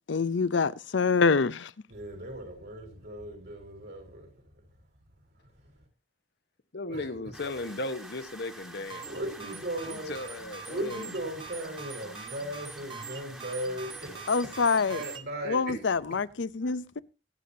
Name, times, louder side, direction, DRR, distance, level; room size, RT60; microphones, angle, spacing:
voice 1, 0.1-1.7 14.3-15.0 15.5-17.0, left 4 dB, 85° left, 0.6 m, -26 dB
voice 2, 1.9-4.3 6.9-7.1 9.1-10.2 10.7-14.3 14.9-15.8, right 1 dB, 60° right, 4.4 m, -37 dB
voice 3, 6.7-9.1 9.9-11.1, left 2 dB, 65° left, 1.1 m, -36 dB
sound 1, 7.3-15.2, right 1 dB, 5° right, 1.5 m, -47 dB
sound 2, 8.7-15.2, right 5 dB, 30° right, 0.9 m, -44 dB
24.5 x 8.5 x 2.7 m
head